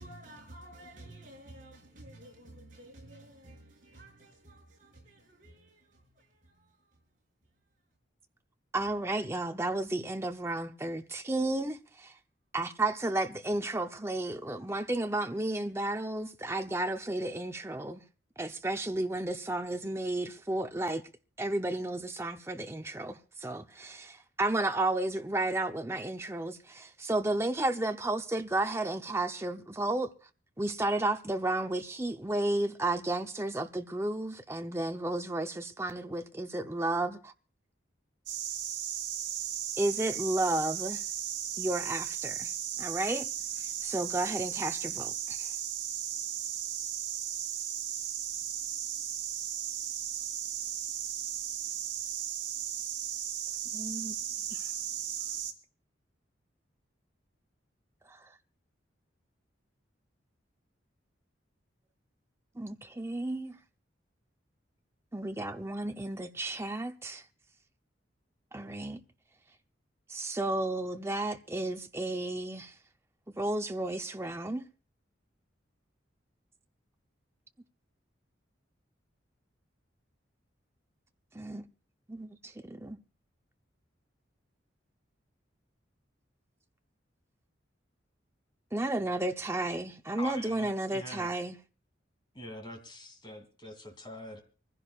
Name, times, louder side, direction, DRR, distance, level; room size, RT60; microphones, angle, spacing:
voice 1, 0.0-7.8, right 1 dB, 45° right, 6.6 m, -52 dB
voice 2, 8.7-12.1 12.5-18.0 18.4-21.0 21.4-30.1 30.6-37.3 39.8-41.0 41.6-42.5 42.8-43.3 43.6-45.5 53.7-54.1 54.5-54.6 58.1-58.2 62.6-63.6 65.1-67.2 68.5-69.0 70.1-72.7 73.4-74.7 81.4-81.6 82.1-82.3 82.6-83.0 88.7-91.6, right 2 dB, 15° right, 0.7 m, -32 dB
sound 1, 38.3-55.5, right 10 dB, 75° right, 2.2 m, -36 dB
voice 3, 90.2-91.3 92.3-94.4, left 1 dB, 25° left, 2.9 m, -44 dB
24.0 x 15.5 x 2.4 m
head